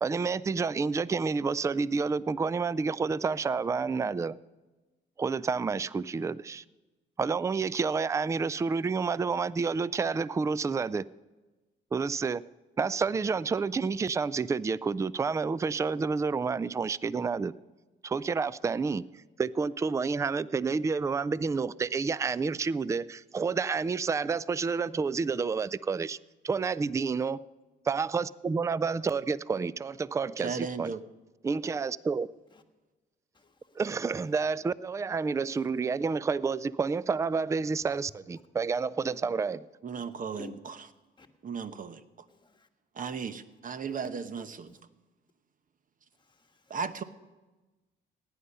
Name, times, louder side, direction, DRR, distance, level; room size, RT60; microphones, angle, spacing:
voice 1, 0.0-4.4 5.2-6.6 7.2-11.0 11.9-12.4 12.8-17.5 18.0-19.1 19.4-26.2 26.4-27.4 27.9-30.9 31.4-32.3 33.8-39.7, right 5 dB, 15° right, 0.3 m, -29 dB
voice 2, 30.4-31.0 39.8-40.8 41.4-42.0 43.0-44.7 46.7-47.0, right 5 dB, 45° right, 0.9 m, -35 dB
voice 3, 33.3-33.7 35.6-35.7 40.3-40.5 41.2-41.3 42.3-42.7 43.9-44.0 44.7-44.8 46.2-46.8, left 3 dB, 25° left, 1.4 m, -52 dB
17.0 x 10.0 x 5.5 m
cardioid pair, 90°, 20 cm